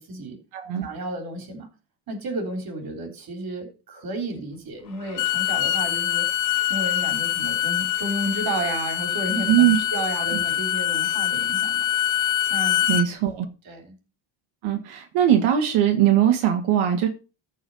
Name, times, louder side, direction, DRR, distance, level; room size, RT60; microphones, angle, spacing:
voice 1, 0.0-0.4 0.8-1.7 2.1-6.2 6.7-11.9 12.5-13.0 13.7-14.0, right 2 dB, 45° right, 5 dB, 3.6 m, -32 dB
voice 2, 0.5-0.9 9.5-9.8 10.1-10.2 12.9-13.5 14.6-17.1, right 10 dB, 85° right, 4 dB, 1.8 m, -20 dB
Bowed string instrument, 5.0-13.1, left 11 dB, 40° left, 0.7 m, -24 dB
14.0 x 4.8 x 5.6 m, 0.33 s
cardioid pair, 135°, 48 cm